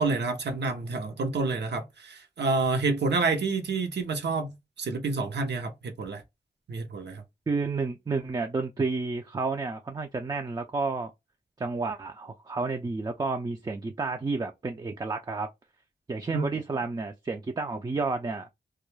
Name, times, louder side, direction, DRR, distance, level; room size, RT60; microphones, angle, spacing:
voice 1, 0.0-6.2 6.7-7.2 16.3-16.5, right 3 dB, 75° right, 0.7 m, -28 dB
voice 2, 7.5-11.1 11.6-15.5 16.1-18.5, right 3 dB, 25° right, 0.4 m, -31 dB
2.3 x 2.1 x 3.0 m
cardioid pair, 50°, 18 cm